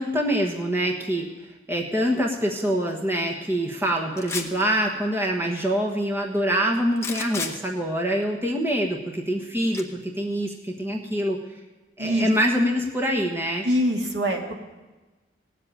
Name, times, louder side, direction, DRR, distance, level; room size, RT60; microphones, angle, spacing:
voice 1, 0.0-11.4 12.0-13.6, equal, 15° right, 0 dB, 1.3 m, -25 dB
sound 1, 4.2-4.6 7.0-7.5 9.7-9.8, left 4 dB, 15° left, 1.0 m, -31 dB
voice 2, 13.6-14.5, equal, 70° right, 1 dB, 2.1 m, -24 dB
18.0 x 7.7 x 9.0 m, 1.2 s
head